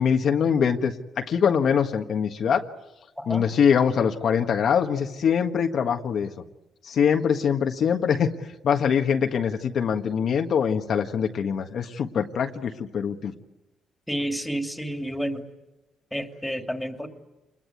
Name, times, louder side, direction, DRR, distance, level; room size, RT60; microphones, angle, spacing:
voice 1, 0.0-2.6 3.3-6.3 6.8-8.3 8.6-13.3, left 7 dB, 60° left, 4 dB, 1.6 m, -23 dB
voice 2, 14.1-15.5 16.1-17.1, equal, 5° left, 5 dB, 2.9 m, -30 dB
27.5 x 21.5 x 9.4 m, 1.0 s
cardioid pair, 90°, 0 cm